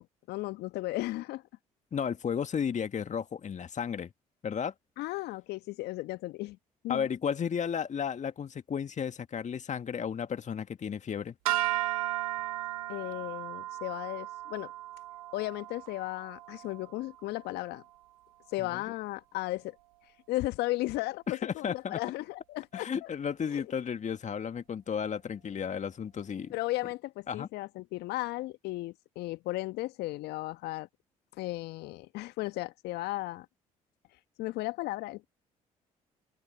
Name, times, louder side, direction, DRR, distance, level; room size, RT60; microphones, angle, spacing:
voice 1, 0.0-1.4 5.0-6.6 6.8-7.1 12.9-14.7 15.3-17.8 18.5-19.7 20.3-23.1 23.5-23.6 26.5-30.9 31.4-33.5 34.4-35.2, left 18 dB, 70° left, 1.6 m, -35 dB
voice 2, 1.9-4.1 4.4-4.7 6.9-11.4 18.6-18.8 21.4-22.0 22.7-26.5 27.3-27.5, left 7 dB, 40° left, 1.9 m, -33 dB
sound 1, 11.5-17.8, right 16 dB, 80° right, 1.6 m, -35 dB
open air
hypercardioid pair, 50°, 18 cm